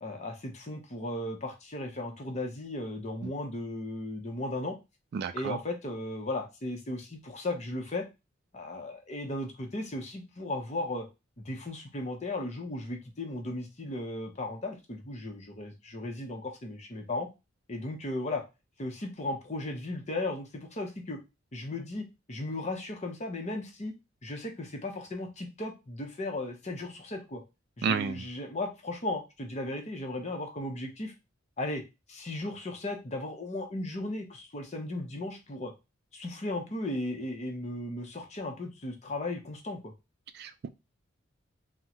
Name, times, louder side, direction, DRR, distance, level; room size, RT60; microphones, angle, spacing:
voice 1, 0.0-4.8 5.3-8.1 8.5-11.1 11.4-17.3 17.7-18.4 18.8-21.2 21.5-23.9 24.2-27.4 27.8-31.1 31.6-31.8 32.1-35.7 36.1-39.9, left 2 dB, 35° left, 3 dB, 0.7 m, -36 dB
voice 2, 5.1-5.6 27.8-28.2 40.3-40.7, right 6 dB, 55° right, 11 dB, 0.3 m, -31 dB
3.6 x 2.1 x 2.8 m, 0.25 s
head